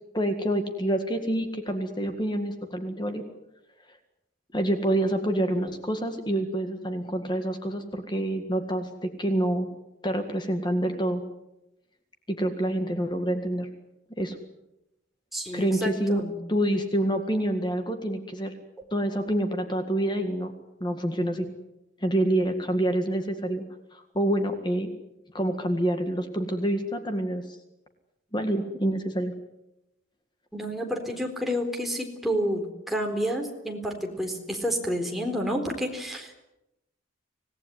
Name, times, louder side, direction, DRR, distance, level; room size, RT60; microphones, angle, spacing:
voice 1, 0.1-3.2 3.9-4.0 4.5-9.7 10.0-11.2 12.4-13.7 14.2-14.4 15.5-16.2 16.5-18.5 18.9-20.5 20.8-21.5 22.0-23.6 23.9-24.9 25.3-27.6 28.3-29.3, right 1 dB, 20° left, 6 dB, 1.8 m, -27 dB
voice 2, 15.3-16.3 30.5-36.3, equal, ahead, 1 dB, 4.0 m, -29 dB
26.0 x 18.0 x 9.5 m, 0.91 s
head